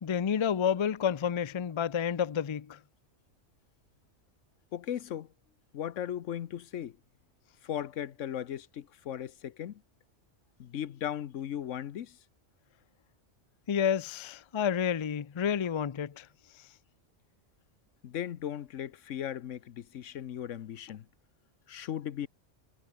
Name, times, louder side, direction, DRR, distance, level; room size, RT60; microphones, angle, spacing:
voice 1, 0.0-2.8 13.7-16.3, left 8 dB, 50° left, 0.3 m, -30 dB
voice 2, 4.7-5.3 5.7-7.0 7.6-9.8 10.6-12.2 18.0-21.1 21.7-22.3, left 10 dB, 80° left, 1.2 m, -37 dB
omnidirectional pair, 1.3 m